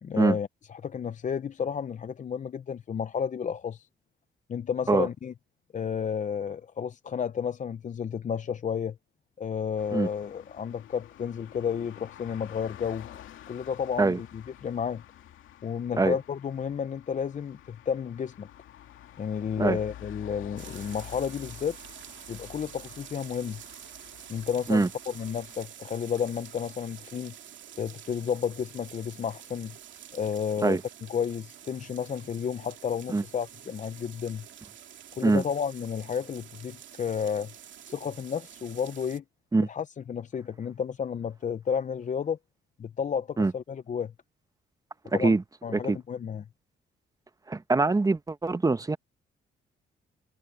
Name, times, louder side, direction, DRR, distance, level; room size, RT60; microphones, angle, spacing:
voice 1, 0.0-3.9 4.5-5.3 5.7-9.0 9.4-13.1 13.5-15.0 15.6-18.5 19.2-21.8 22.3-23.6 24.3-27.3 27.8-29.8 30.1-30.8 31.1-34.4 35.2-37.5 37.8-39.2 39.7-42.4 42.8-44.1 45.1-45.4 45.6-46.5, left 7 dB, 40° left, 0.7 m, -32 dB
sound 1, 9.8-25.7, left 11 dB, 80° left, 2.4 m, -49 dB
sound 2, 20.6-39.2, right 10 dB, 70° right, 2.7 m, -48 dB
voice 2, 47.5-49.0, right 3 dB, 20° right, 1.1 m, -23 dB
cardioid pair, 90°, 20 cm